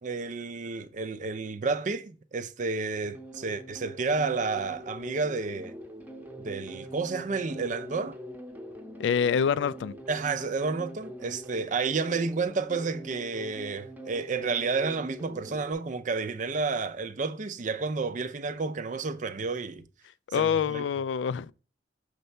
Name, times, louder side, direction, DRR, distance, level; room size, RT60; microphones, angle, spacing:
voice 1, 0.0-5.8 6.4-8.2 10.1-19.8 20.3-20.8, right 4 dB, 45° right, 0.5 m, -31 dB
sound 1, 3.0-15.7, right 1 dB, 10° right, 0.7 m, -43 dB
voice 2, 9.0-9.9 20.3-21.5, left 7 dB, 90° left, 0.3 m, -26 dB
6.7 x 3.3 x 5.3 m
head